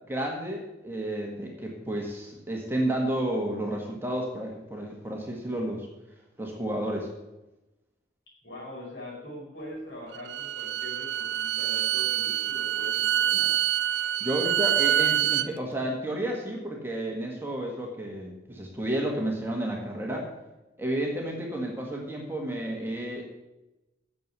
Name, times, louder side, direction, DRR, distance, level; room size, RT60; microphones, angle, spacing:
voice 1, 0.1-5.9 6.4-7.1 14.2-20.3 20.8-23.2, right 1 dB, 10° right, 0 dB, 1.7 m, -31 dB
voice 2, 8.4-13.5, left 1 dB, 70° left, -3 dB, 5.1 m, -42 dB
Bowed string instrument, 10.1-15.5, right 11 dB, 80° right, 0.5 m, -26 dB
9.2 x 6.9 x 8.2 m, 0.99 s
head